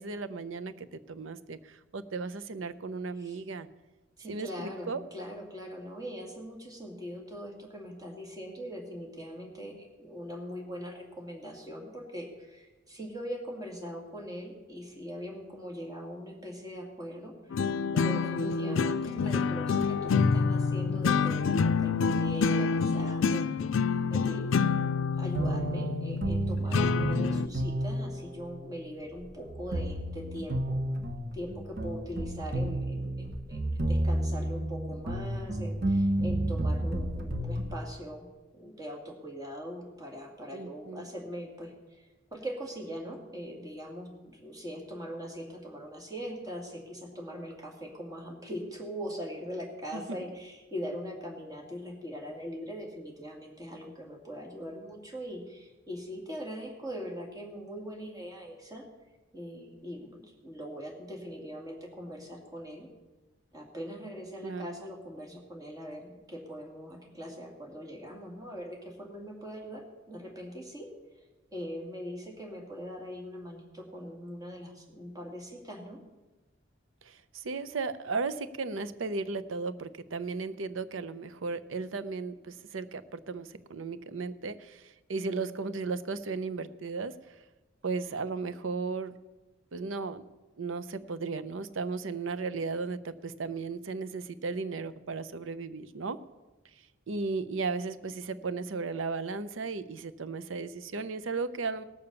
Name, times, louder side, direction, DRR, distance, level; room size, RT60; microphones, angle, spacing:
voice 1, 0.0-3.7 4.3-5.0 18.4-18.9 40.5-41.1 49.9-50.2 64.4-64.8 77.0-87.4 87.8-89.1 89.7-90.2 90.6-96.2 97.1-101.8, right 4 dB, 85° right, 14 dB, 0.7 m, -35 dB
voice 2, 4.2-17.3 17.9-23.8 24.1-30.8 31.3-38.3 38.5-58.8 59.3-62.9 63.5-70.9 71.2-71.3 71.5-76.0, equal, 20° right, -1 dB, 2.5 m, -41 dB
sound 1, 17.5-27.5, left 5 dB, 85° left, 0.4 m, -27 dB
sound 2, 25.3-37.8, right 1 dB, 55° right, 1.1 m, -31 dB
17.5 x 6.9 x 6.9 m, 1.1 s
head